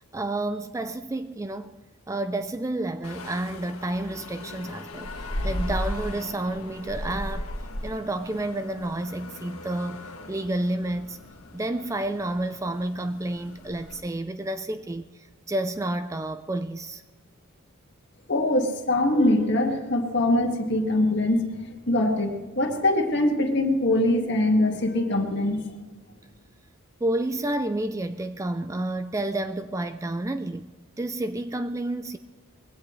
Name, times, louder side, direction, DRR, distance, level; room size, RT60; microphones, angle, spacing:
voice 1, 0.1-1.7 2.1-7.5 7.8-11.2 11.5-17.0 27.0-30.7 31.0-32.2, right 1 dB, 15° right, 0.4 m, -30 dB
sound 1, 3.0-14.0, left 1 dB, 90° left, 1.6 m, -36 dB
voice 2, 18.3-21.5 21.9-25.6, left 1 dB, 55° left, 2.0 m, -23 dB
21.0 x 16.5 x 3.2 m
head